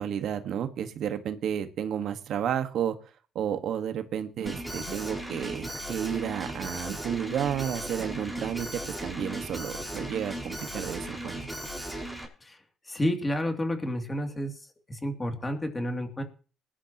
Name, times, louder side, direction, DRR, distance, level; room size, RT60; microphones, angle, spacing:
voice 1, 0.0-2.9 3.3-8.7 9.0-11.5, right 9 dB, 65° right, 9 dB, 1.5 m, -32 dB
sound 1, 4.4-5.1 5.4-5.6 6.0-6.1 6.9-7.1 7.9-8.2, right 10 dB, 85° right, 1.6 m, -44 dB
Alarm, 4.5-12.3, right 1 dB, ahead, 5.0 m, -37 dB
voice 2, 12.9-14.5 14.9-16.2, equal, 15° left, 4 dB, 2.7 m, -30 dB
20.5 x 11.5 x 3.0 m, 0.36 s
cardioid pair, 110°, 0 cm